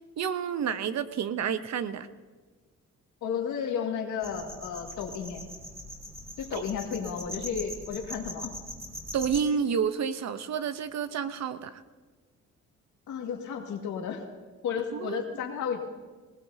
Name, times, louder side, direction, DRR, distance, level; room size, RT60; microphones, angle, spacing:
voice 1, 0.2-2.1 6.5-6.6 9.1-11.8 14.9-15.2, right 7 dB, 60° right, 11 dB, 0.9 m, -29 dB
voice 2, 3.2-5.5 6.4-8.5 13.1-14.2 14.6-15.8, left 7 dB, 80° left, 2 dB, 2.1 m, -33 dB
sound 1, 4.2-9.4, equal, 10° right, 2.7 m, -41 dB
20.0 x 19.0 x 2.8 m, 1.4 s
cardioid pair, 90°, 30 cm